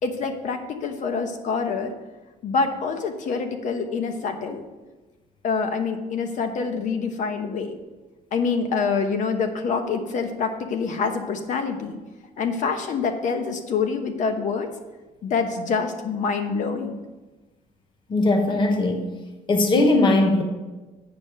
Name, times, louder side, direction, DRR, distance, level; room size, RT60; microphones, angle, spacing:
voice 1, 0.0-1.9 2.4-4.7 5.4-7.8 8.3-12.0 12.4-14.7 15.2-17.0, left 5 dB, 55° left, 6 dB, 1.0 m, -26 dB
voice 2, 18.1-19.1 19.5-20.4, left 2 dB, 30° left, 4 dB, 1.0 m, -19 dB
9.3 x 5.2 x 6.4 m, 1.2 s
cardioid pair, 175°, 15 cm